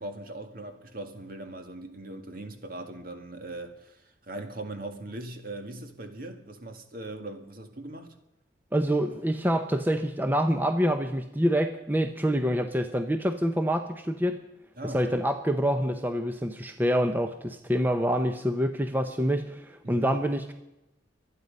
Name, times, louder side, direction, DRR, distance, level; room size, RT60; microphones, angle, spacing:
voice 1, 0.0-8.1 14.8-15.2 19.8-20.1, right 2 dB, 50° right, 2.0 m, -40 dB
voice 2, 8.7-14.4 14.9-20.5, equal, 10° right, 0.7 m, -26 dB
24.5 x 9.7 x 5.4 m
head